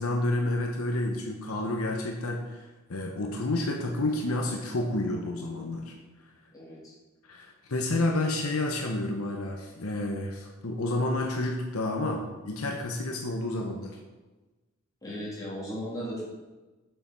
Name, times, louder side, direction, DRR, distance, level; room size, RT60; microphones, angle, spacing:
voice 1, 0.0-2.6 2.9-6.0 7.2-14.0, left 2 dB, 75° left, 1 dB, 1.0 m, -30 dB
voice 2, 6.5-6.9 15.0-16.3, equal, 15° left, -7 dB, 3.1 m, -36 dB
7.4 x 6.9 x 5.3 m, 1.2 s
head